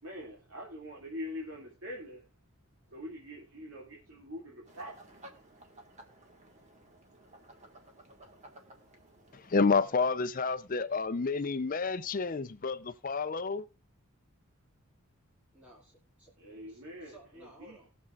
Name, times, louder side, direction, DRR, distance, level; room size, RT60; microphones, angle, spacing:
voice 1, 0.0-2.3 2.9-5.1 16.4-17.8, left 1 dB, 60° right, 2.6 m, -44 dB
sound 1, 4.6-9.9, right 1 dB, 30° right, 1.7 m, -56 dB
voice 2, 9.3-13.7, left 4 dB, 40° left, 0.5 m, -29 dB
voice 3, 15.5-16.3 16.7-17.9, right 1 dB, 5° right, 2.4 m, -56 dB
20.0 x 7.0 x 2.5 m
head